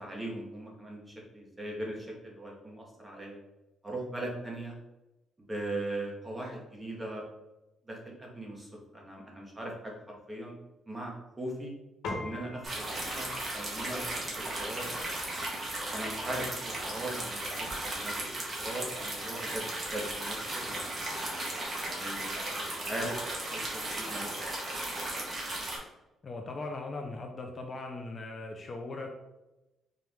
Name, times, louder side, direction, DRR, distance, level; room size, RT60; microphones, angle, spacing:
voice 1, 0.0-3.4 3.8-4.8 5.4-7.2 7.9-9.9 10.3-10.5 10.9-11.7 12.2-14.9 15.9-18.2 18.6-19.6 19.9-21.1 21.9-23.2 23.5-24.3, right 1 dB, 15° right, -1 dB, 1.3 m, -39 dB
Piano, 12.0-21.6, left 2 dB, 80° left, 1.1 m, -48 dB
sound 1, 12.6-25.8, right 1 dB, 35° right, 1.3 m, -36 dB
voice 2, 26.2-29.1, left 3 dB, 40° left, 3 dB, 0.6 m, -39 dB
4.4 x 2.6 x 3.5 m, 0.98 s
cardioid pair, 90°, 0 cm